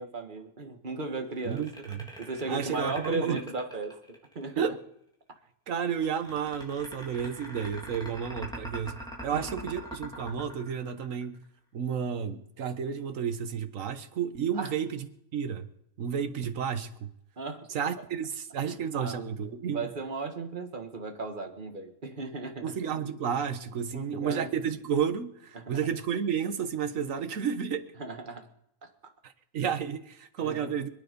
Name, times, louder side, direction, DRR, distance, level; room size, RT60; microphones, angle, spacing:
voice 1, 0.0-1.6 2.2-4.6 7.2-7.3 9.3-9.4 14.6-14.7 17.4-17.7 18.9-19.2 19.7-22.7 23.9-24.5 25.5-25.8 28.0-28.5 28.8-28.9 30.4-30.7, right 3 dB, 35° right, 5 dB, 1.8 m, -36 dB
sound 1, 1.3-4.5 5.9-11.4, equal, 5° left, 3.7 m, -42 dB
voice 2, 1.4-2.1 2.5-3.4 4.6-4.8 5.7-11.4 11.7-15.7 16.0-17.1 17.7-19.9 22.6-27.9 29.2-30.9, right 7 dB, 70° right, 9 dB, 1.5 m, -32 dB
26.0 x 9.5 x 5.3 m, 0.76 s
omnidirectional pair, 1.5 m